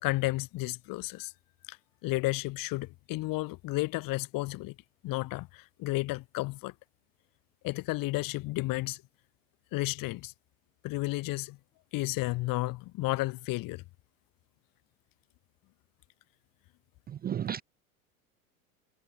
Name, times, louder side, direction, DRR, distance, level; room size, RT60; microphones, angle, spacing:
voice 1, 0.0-1.3 1.7-1.8 2.0-4.8 5.0-6.7 7.6-9.0 9.7-10.3 10.8-11.6 11.9-13.8, left 20 dB, 50° left, 3.5 m, -32 dB
voice 2, 17.1-17.6, right 9 dB, 20° right, 0.6 m, -33 dB
hypercardioid pair, 85°, 41 cm